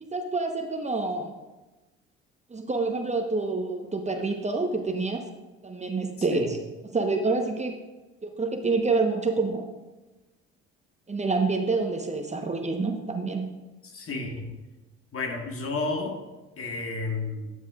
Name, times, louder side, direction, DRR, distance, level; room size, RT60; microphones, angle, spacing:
voice 1, 0.0-1.3 2.5-5.2 5.6-6.6 6.9-7.8 8.2-9.7 11.1-13.5, right 3 dB, 20° right, 4 dB, 1.1 m, -27 dB
voice 2, 13.8-14.5 15.1-16.2 16.6-17.5, left 3 dB, 45° left, 3 dB, 1.7 m, -31 dB
12.5 x 8.3 x 2.5 m, 1.1 s
hypercardioid pair, 60°, 32 cm